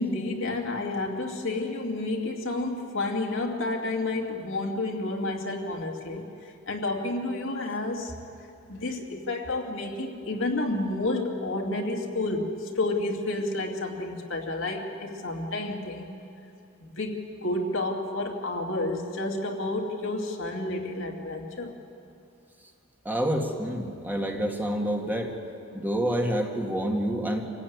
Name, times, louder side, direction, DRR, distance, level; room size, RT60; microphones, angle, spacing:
voice 1, 0.0-8.2 8.7-16.1 16.8-21.7, left 2 dB, 70° left, 1 dB, 2.6 m, -30 dB
voice 2, 23.1-25.3 25.7-27.5, right 1 dB, 10° right, 1 dB, 1.9 m, -28 dB
27.0 x 16.0 x 9.5 m, 2.7 s
head